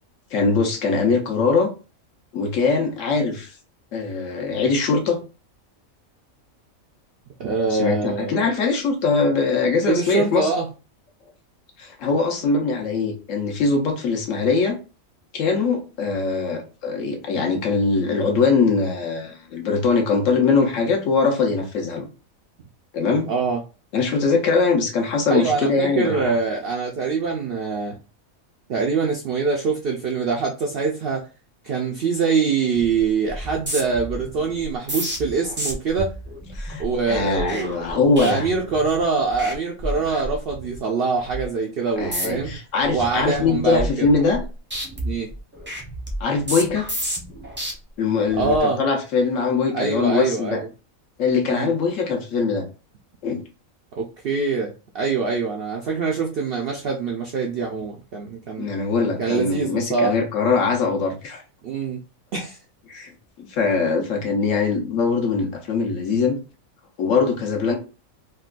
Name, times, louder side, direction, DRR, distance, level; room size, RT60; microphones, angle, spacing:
voice 1, 0.3-1.7 2.3-3.5 3.9-5.2 7.7-10.5 11.8-14.8 15.3-22.1 22.9-23.3 23.9-26.3 36.5-38.5 42.0-44.4 46.2-46.9 48.0-50.6 51.2-52.6 53.2-53.4 58.6-61.4 62.9-63.1 63.4-66.4 67.0-67.7, left 4 dB, 65° left, 2 dB, 1.1 m, -22 dB
voice 2, 7.4-8.4 9.8-10.7 23.3-23.6 25.3-28.0 28.7-31.3 31.6-36.1 36.8-42.5 42.9-44.1 45.0-45.3 48.3-48.8 49.7-50.6 51.4-51.7 54.0-58.7 59.2-60.1 61.6-62.0 62.3-62.6 64.2-64.3, right 4 dB, 65° right, 0 dB, 0.6 m, -24 dB
sound 1, 32.7-33.0 33.3-39.0 39.3-39.5 39.8-40.8 41.2-41.4 42.0-42.5 42.9-44.4 44.7-47.7 48.3-48.6, equal, 15° right, 0.5 m, -31 dB
3.7 x 2.2 x 2.4 m, 0.33 s
omnidirectional pair, 1.5 m